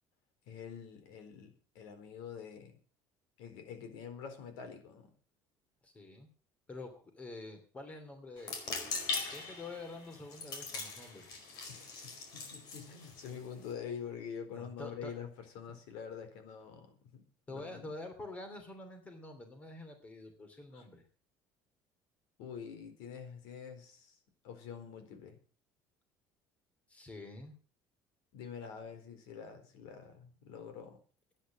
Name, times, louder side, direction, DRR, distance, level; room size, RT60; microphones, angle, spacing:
voice 1, 0.5-2.8 3.4-5.1 11.7-17.9 20.7-20.9 22.4-24.2 24.4-25.4 28.3-31.0, left 7 dB, 85° left, 8 dB, 4.1 m, -46 dB
voice 2, 5.8-6.3 6.7-8.6 9.3-11.3 14.5-15.1 17.5-21.0 26.9-27.6, left 2 dB, 15° left, 7 dB, 3.1 m, -47 dB
sound 1, 8.4-13.7, left 4 dB, 60° left, 4.6 m, -41 dB
13.0 x 10.0 x 7.3 m, 0.40 s
cardioid pair, 160°, 8 cm